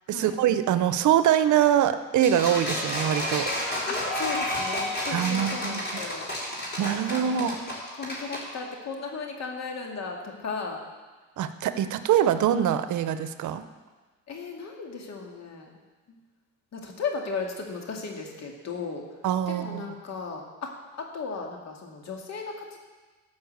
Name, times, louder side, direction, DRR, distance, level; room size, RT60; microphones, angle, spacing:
voice 1, 0.1-3.5 5.1-6.0 6.8-7.6 11.4-13.6 19.2-19.9, right 10 dB, 75° right, 11 dB, 0.8 m, -24 dB
sound 1, 2.2-8.4, left 1 dB, 30° left, 4.4 m, -30 dB
voice 2, 3.9-6.3 6.8-7.7 8.0-10.8 14.3-15.8 16.1-16.2 16.7-19.0 19.5-20.7 21.0-22.8, left 4 dB, 60° left, 1 dB, 2.2 m, -36 dB
13.5 x 5.5 x 8.0 m, 1.3 s
cardioid pair, 90°, 30 cm